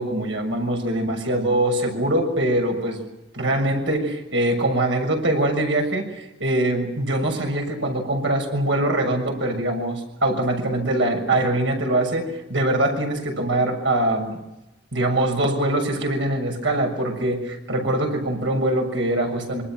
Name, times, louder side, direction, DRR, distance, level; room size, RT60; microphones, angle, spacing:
voice 1, 0.0-3.0 3.3-14.4 14.9-19.6, right 1 dB, 90° right, 3 dB, 6.8 m, -23 dB
26.5 x 25.5 x 6.2 m, 0.94 s
head